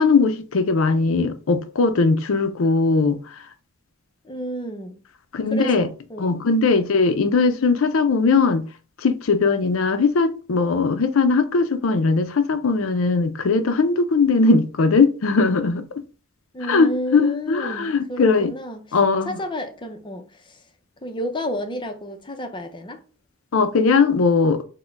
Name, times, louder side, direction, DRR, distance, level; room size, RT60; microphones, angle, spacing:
voice 1, 0.0-3.2 5.3-5.9 6.2-8.6 9.0-15.8 16.7-18.5 18.9-19.4 23.5-24.6, left 4 dB, 70° left, 0.5 m, -19 dB
voice 2, 4.2-5.0 5.5-6.4 16.5-19.0 19.2-20.6 21.0-23.0, left 1 dB, 25° left, 0.6 m, -31 dB
4.3 x 2.2 x 4.4 m
head